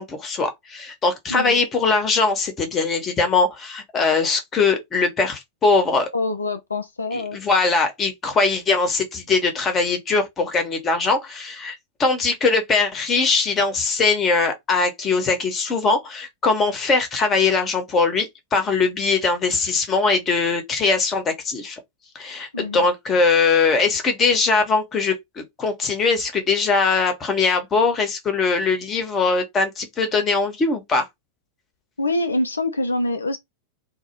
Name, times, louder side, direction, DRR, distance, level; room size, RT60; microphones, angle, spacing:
voice 1, 0.0-6.1 7.1-21.8 22.1-31.1, left 4 dB, 25° left, 0.8 m, -21 dB
voice 2, 6.1-7.4 22.5-22.9 32.0-33.4, left 2 dB, 75° left, 0.3 m, -25 dB
2.3 x 2.0 x 2.8 m
figure-of-eight pair, 90°, 0 cm